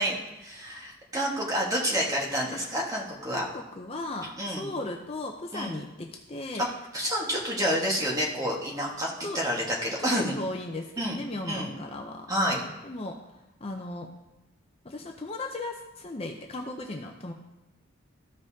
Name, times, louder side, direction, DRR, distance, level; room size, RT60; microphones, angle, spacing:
voice 1, 0.0-3.4 4.4-4.7 5.5-5.8 6.6-6.7 6.9-10.4 11.0-11.7 12.3-12.6, equal, 15° right, -3 dB, 1.4 m, -29 dB
voice 2, 3.3-6.7 9.2-9.4 10.0-10.1 10.4-12.3 12.8-13.2 13.6-14.1 14.8-17.3, left 2 dB, 30° left, 3 dB, 0.5 m, -36 dB
14.0 x 5.3 x 2.8 m, 0.97 s
head